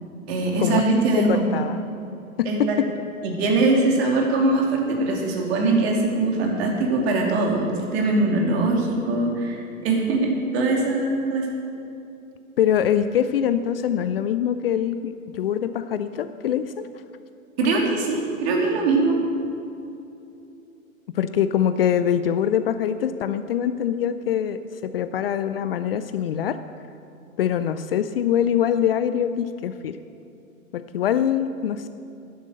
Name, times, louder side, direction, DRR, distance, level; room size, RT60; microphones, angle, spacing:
voice 1, 0.3-1.5 2.4-2.8 3.2-11.5 17.6-19.2, right 2 dB, 45° right, 0 dB, 2.8 m, -22 dB
voice 2, 1.3-1.8 2.4-2.9 12.6-16.9 21.1-26.6 27.4-30.0 30.7-31.9, left 9 dB, 45° left, 11 dB, 0.5 m, -23 dB
10.5 x 8.1 x 7.8 m, 2.7 s
hypercardioid pair, 120°, 42 cm